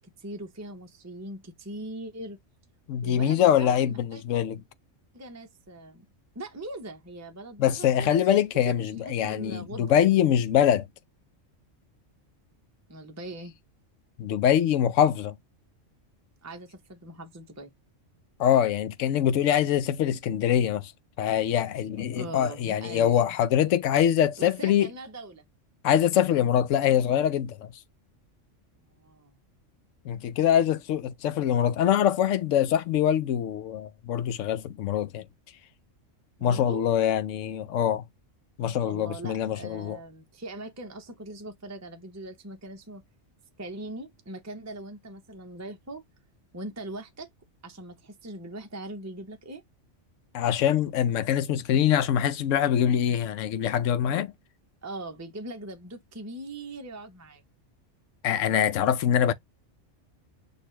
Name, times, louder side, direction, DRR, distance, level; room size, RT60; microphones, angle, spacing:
voice 1, 0.0-2.4 3.0-4.2 5.1-6.0 6.3-9.9 12.9-13.5 16.4-17.7 22.1-23.3 24.4-25.5 28.9-29.4 36.4-36.8 38.6-43.0 43.6-46.0 46.5-47.3 47.6-49.6 54.1-54.2 54.8-57.4, right 2 dB, 20° right, 0.4 m, -41 dB
voice 2, 2.9-4.6 7.6-10.9 14.2-15.4 18.4-20.9 21.2-24.9 25.8-27.7 30.0-35.2 36.4-38.0 38.6-40.0 50.3-54.3 58.2-59.3, left 10 dB, 80° left, 1.0 m, -24 dB
6.4 x 2.6 x 3.1 m
omnidirectional pair, 1.3 m